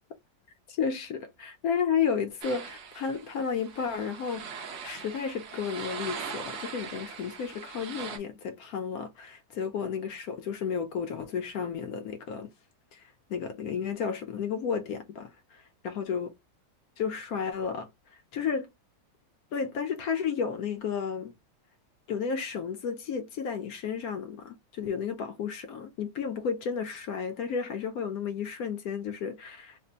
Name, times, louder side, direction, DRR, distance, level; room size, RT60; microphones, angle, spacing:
voice 1, 0.7-4.5 4.8-12.5 12.9-13.0 13.3-16.3 17.0-17.9 18.3-18.7 19.5-21.3 22.1-29.8, left 6 dB, 65° left, 1.0 m, -32 dB
sound 1, 2.4-8.2, right 6 dB, 60° right, 0.7 m, -41 dB
3.3 x 2.1 x 3.8 m
omnidirectional pair, 1.9 m